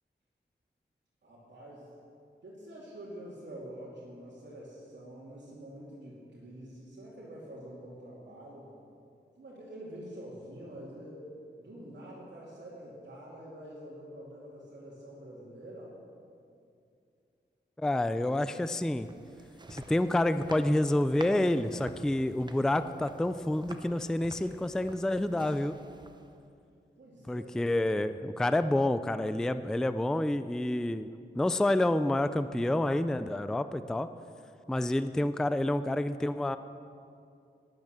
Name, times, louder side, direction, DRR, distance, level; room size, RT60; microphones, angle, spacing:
voice 1, 1.2-1.9 2.4-8.7 9.4-11.3 11.6-15.9 27.0-27.7, right 1 dB, 70° right, -7 dB, 2.7 m, -46 dB
voice 2, 17.8-19.1 19.7-25.7 27.3-31.1 31.3-34.1 34.7-36.6, left 1 dB, 5° left, 12 dB, 0.3 m, -28 dB
sound 1, 18.7-26.5, right 2 dB, 25° right, 0.8 m, -50 dB
11.5 x 10.5 x 6.6 m, 2.5 s
wide cardioid pair, 110°, 19 cm